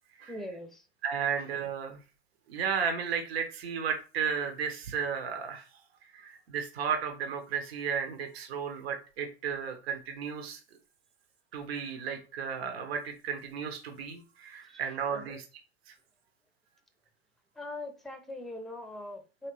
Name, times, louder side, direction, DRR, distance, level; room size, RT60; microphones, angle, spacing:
voice 1, 0.3-0.9 14.7-14.8 15.1-15.4 17.5-19.5, left 1 dB, ahead, 6 dB, 0.6 m, -41 dB
voice 2, 1.0-2.0 2.5-5.7 6.1-10.6 11.5-15.4, right 7 dB, 80° right, 5 dB, 1.1 m, -34 dB
4.4 x 3.2 x 3.1 m, 0.33 s
hypercardioid pair, 125°, 31 cm